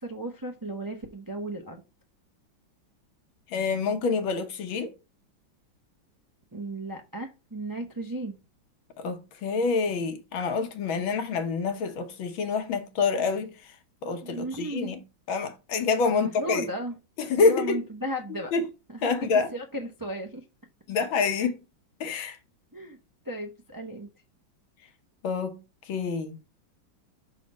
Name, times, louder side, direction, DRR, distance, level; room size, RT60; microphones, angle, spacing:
voice 1, 0.0-1.8 6.5-8.4 10.9-11.2 14.2-15.0 16.0-16.9 17.3-18.5 18.9-20.4 21.2-21.3 22.7-23.0 23.2-24.1, right 1 dB, 30° right, 0.3 m, -35 dB
voice 2, 3.5-4.9 9.0-13.7 14.0-15.0 15.3-16.7 17.2-17.8 18.5-18.7 19.0-19.5 20.9-21.6 22.0-22.4 25.2-25.6 25.9-26.4, left 4 dB, 80° left, 1.8 m, -27 dB
5.8 x 4.1 x 5.2 m
omnidirectional pair, 2.2 m